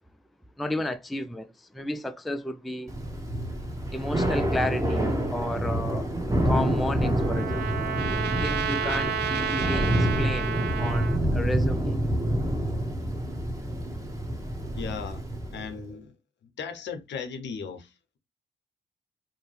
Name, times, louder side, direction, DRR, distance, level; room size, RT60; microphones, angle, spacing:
voice 1, 0.6-2.9 3.9-6.1 6.4-7.9 8.4-12.0, left 1 dB, ahead, 0.4 m, -33 dB
Thunder / Rain, 2.9-15.8, right 1 dB, 15° right, 1.0 m, -27 dB
Trumpet, 6.5-11.2, right 7 dB, 55° right, 0.5 m, -31 dB
voice 2, 14.7-15.2 15.5-16.1 16.4-18.2, left 6 dB, 65° left, 0.7 m, -37 dB
2.6 x 2.1 x 3.2 m
hypercardioid pair, 45°, 20 cm